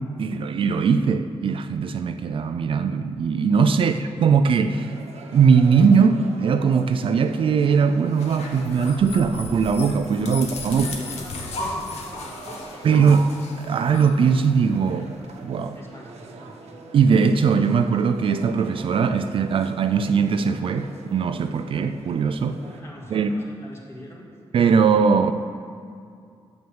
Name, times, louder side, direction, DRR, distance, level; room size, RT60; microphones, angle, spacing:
voice 1, 0.2-4.9 5.3-10.9 12.8-15.1 15.4-15.8 16.9-22.6 23.1-23.3 24.5-25.3, right 6 dB, 55° right, 9 dB, 0.4 m, -20 dB
sound 1, 4.7-22.8, right 3 dB, 85° right, 1.2 m, -44 dB
sound 2, 8.0-15.0, left 2 dB, 90° left, 1.4 m, -35 dB
voice 2, 10.3-13.0 15.7-16.8 22.5-24.3, equal, 25° left, -3 dB, 2.1 m, -43 dB
9.4 x 7.2 x 7.1 m, 2.3 s
wide cardioid pair, 165°, 11 cm